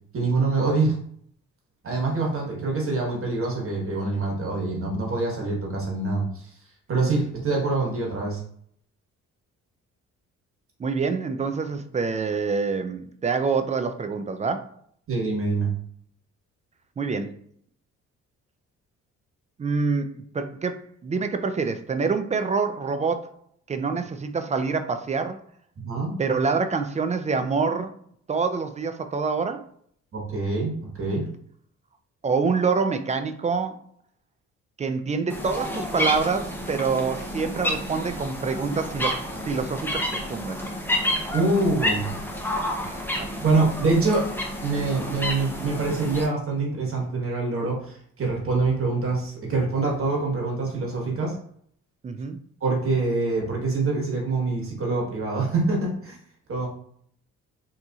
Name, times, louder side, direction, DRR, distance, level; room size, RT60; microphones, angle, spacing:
voice 1, 0.1-0.9 1.8-6.5 6.9-8.4 15.1-15.7 25.8-26.1 30.1-31.2 41.3-42.0 43.4-44.3 44.6-51.3 52.6-56.2 56.5-56.7, right 3 dB, 45° right, -1 dB, 1.3 m, -25 dB
voice 2, 10.8-14.7 17.0-17.3 19.6-23.3 23.7-25.4 26.2-27.9 28.3-29.6 32.2-33.8 34.8-39.2 39.4-40.0 40.3-40.6 42.8-43.0 52.0-52.4, right 4 dB, 25° right, 8 dB, 0.3 m, -26 dB
sound 1, 35.3-46.3, left 1 dB, 5° left, 0.7 m, -30 dB
3.9 x 2.8 x 2.4 m, 0.63 s
cardioid pair, 90°, 30 cm